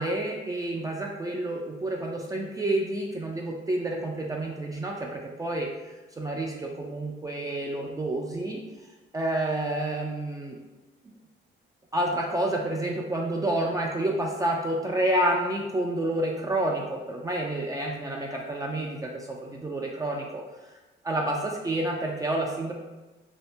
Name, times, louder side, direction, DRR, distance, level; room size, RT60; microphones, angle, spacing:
voice 1, 0.0-8.6 9.1-10.6 11.0-11.1 11.9-20.4 21.0-22.7, right 1 dB, 15° right, -1 dB, 0.4 m, -29 dB
2.7 x 2.6 x 3.2 m, 1.1 s
cardioid pair, 90°, 20 cm